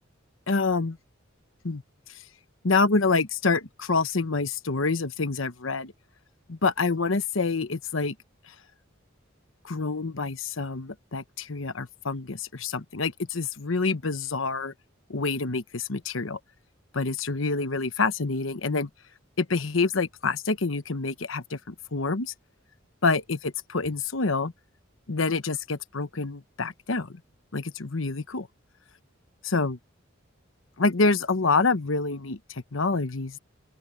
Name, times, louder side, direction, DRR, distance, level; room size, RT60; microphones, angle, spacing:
voice 1, 0.5-1.0 1.6-1.8 2.6-5.9 6.5-8.1 9.6-14.7 15.1-16.4 16.9-18.9 19.4-22.3 23.0-24.5 25.1-27.1 27.5-28.5 29.4-29.8 30.8-33.4, left 3 dB, 80° left, 1.1 m, -27 dB
open air
head